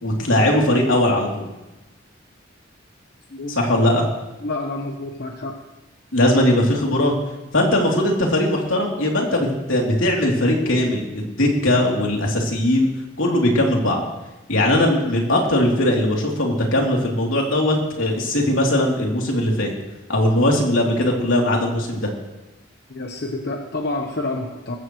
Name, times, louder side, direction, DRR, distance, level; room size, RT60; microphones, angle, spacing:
voice 1, 0.0-1.4 3.5-4.1 6.1-7.1 7.5-12.9 13.2-14.0 14.5-19.7 20.1-22.1, left 1 dB, 80° left, -1 dB, 3.2 m, -19 dB
voice 2, 4.4-5.6 22.9-24.8, left 2 dB, 55° left, 2 dB, 1.1 m, -28 dB
21.0 x 14.5 x 3.2 m, 1.0 s
head